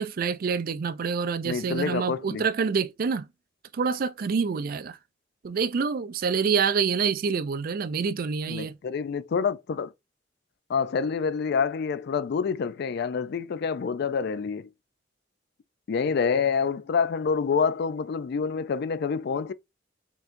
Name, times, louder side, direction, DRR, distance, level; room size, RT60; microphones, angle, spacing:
voice 1, 0.0-3.3 3.7-5.0 5.4-8.8, right 5 dB, 50° right, 0.4 m, -27 dB
voice 2, 1.4-2.5 8.5-9.9 10.7-14.7 15.9-19.5, left 5 dB, 60° left, 0.4 m, -27 dB
4.3 x 3.8 x 2.5 m
head